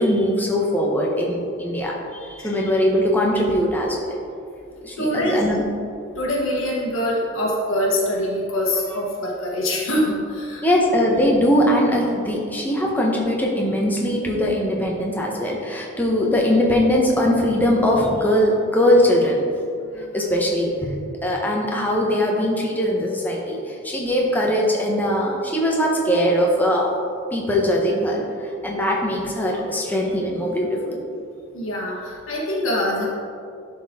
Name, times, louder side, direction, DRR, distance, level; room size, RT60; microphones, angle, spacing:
voice 1, 0.0-4.2 4.8-5.7 10.6-19.4 20.1-20.9 21.2-26.9 27.3-31.0, equal, 10° left, -2 dB, 1.0 m, -21 dB
voice 2, 5.0-5.4 6.1-10.7 19.8-20.1 31.5-33.1, left 1 dB, 80° left, -3 dB, 1.3 m, -24 dB
11.0 x 4.4 x 3.6 m, 2.5 s
head